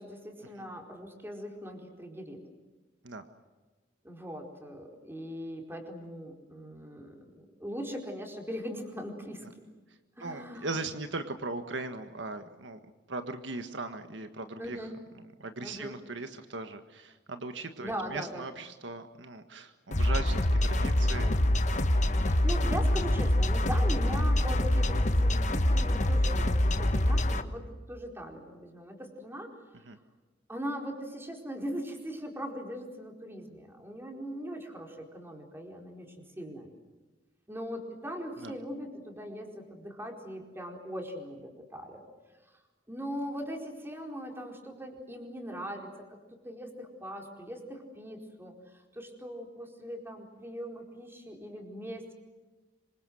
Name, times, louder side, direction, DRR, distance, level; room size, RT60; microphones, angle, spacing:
voice 1, 0.0-2.4 4.0-9.4 10.2-10.7 14.6-14.9 15.6-16.0 17.8-18.5 22.2-29.5 30.5-36.7 37.5-42.0 42.9-45.9 46.4-52.1, equal, 15° right, 2 dB, 4.6 m, -40 dB
voice 2, 10.2-12.8 13.1-14.8 15.4-21.4 21.7-21.8 29.9-30.0 38.4-38.5, right 3 dB, 75° right, 8 dB, 1.6 m, -39 dB
sound 1, 19.9-27.4, left 1 dB, 40° left, 1.4 m, -25 dB
26.5 x 25.0 x 7.8 m, 1.3 s
head